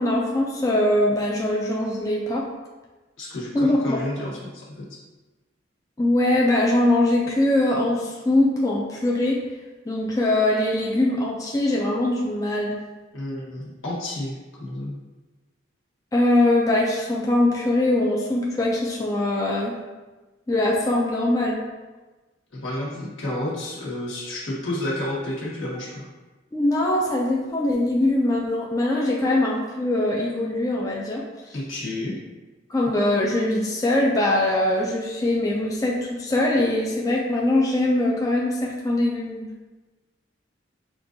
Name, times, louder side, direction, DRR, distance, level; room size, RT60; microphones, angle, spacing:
voice 1, 0.0-2.5 3.5-4.0 6.0-9.4 9.9-12.8 16.1-19.7 20.5-21.6 26.5-31.2 32.7-39.5, left 1 dB, 15° left, -3 dB, 0.4 m, -22 dB
voice 2, 3.2-4.8 13.1-14.9 22.5-26.1 31.5-32.2, left 1 dB, 80° left, -6 dB, 1.4 m, -30 dB
5.9 x 2.5 x 2.6 m, 1.2 s
head